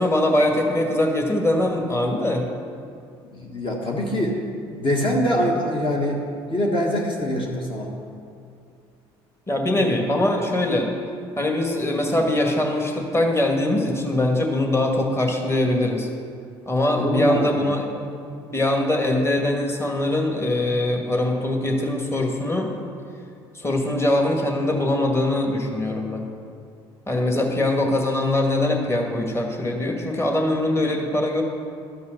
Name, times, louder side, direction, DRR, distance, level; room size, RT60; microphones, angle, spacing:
voice 1, 0.0-2.5 9.5-10.9 11.4-16.1 16.7-17.8 18.5-22.7 23.5-26.3 27.1-31.4, left 1 dB, 20° left, 1 dB, 1.9 m, -22 dB
voice 2, 3.3-4.4 4.6-6.2 6.5-7.9 9.8-9.9 16.9-17.7 27.3-27.4, equal, 40° left, -1 dB, 1.6 m, -24 dB
12.5 x 5.5 x 6.6 m, 2.4 s
hypercardioid pair, 60°, 14 cm